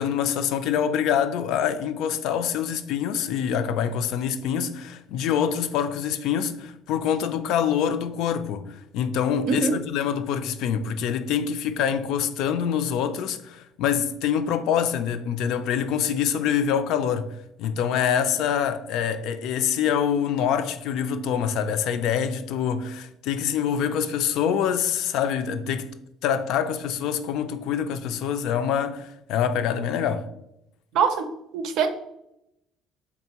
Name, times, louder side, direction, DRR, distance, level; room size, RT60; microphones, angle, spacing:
voice 1, 0.0-25.9 26.2-30.3, left 8 dB, 70° left, 0.3 m, -25 dB
voice 2, 9.5-9.8 30.9-31.3 31.5-31.9, right 5 dB, 65° right, 0.5 m, -22 dB
4.0 x 3.5 x 2.8 m
cardioid pair, 150°, 0 cm